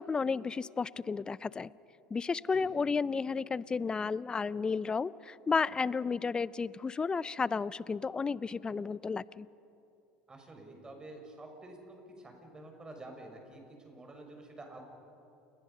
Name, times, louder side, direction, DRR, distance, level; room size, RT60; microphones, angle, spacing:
voice 1, 0.0-1.7 2.1-9.5, left 5 dB, 25° left, 20 dB, 0.5 m, -32 dB
voice 2, 10.3-14.8, right 2 dB, 20° right, 3 dB, 5.7 m, -49 dB
29.0 x 21.5 x 5.5 m, 2.8 s
hypercardioid pair, 85°, 4 cm